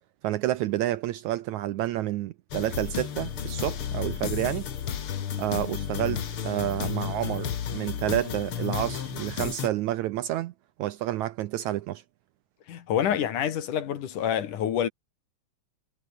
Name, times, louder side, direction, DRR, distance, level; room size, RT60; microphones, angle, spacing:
voice 1, 0.2-4.7 5.4-10.5 10.8-12.0, right 14 dB, 75° right, 1.8 m, -29 dB
sound 1, 2.5-9.7, left 8 dB, 50° left, 2.0 m, -32 dB
voice 2, 12.7-14.9, left 9 dB, 70° left, 3.3 m, -27 dB
omnidirectional pair, 3.9 m